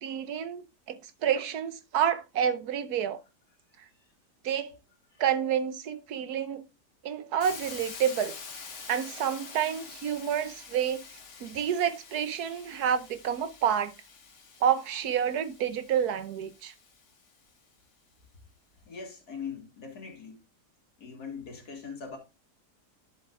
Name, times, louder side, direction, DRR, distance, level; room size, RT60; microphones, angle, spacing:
voice 1, 0.0-3.2 4.4-4.7 5.2-6.7 7.0-8.4 8.9-11.0 11.4-13.9 14.6-16.7, right 9 dB, 70° right, 1.2 m, -29 dB
Hiss, 7.4-17.3, left 5 dB, 45° left, 1.5 m, -47 dB
voice 2, 18.9-20.4 21.0-22.2, left 6 dB, 70° left, 2.5 m, -41 dB
11.0 x 7.3 x 2.4 m
omnidirectional pair, 1.8 m